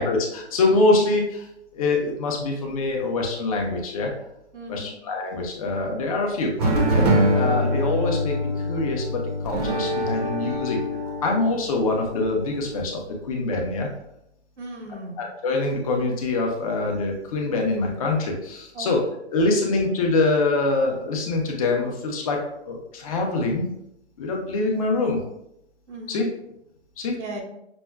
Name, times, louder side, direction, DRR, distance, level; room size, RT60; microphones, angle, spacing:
voice 1, 0.0-1.5 1.7-4.1 4.7-6.5 6.9-8.3 8.7-10.8 11.2-13.9 15.2-19.0 19.3-23.7 24.2-25.2 26.1-26.3 27.0-27.2, left 3 dB, 30° left, 1 dB, 0.7 m, -24 dB
voice 2, 4.5-5.0 11.5-11.6 14.6-15.2 18.7-19.0 25.9-26.3 27.1-27.4, right 1 dB, 80° right, -1 dB, 1.0 m, -37 dB
sound 1, 6.6-12.8, equal, 35° right, 0.7 m, -24 dB
6.0 x 2.1 x 2.2 m, 0.82 s
hypercardioid pair, 150°, 34 cm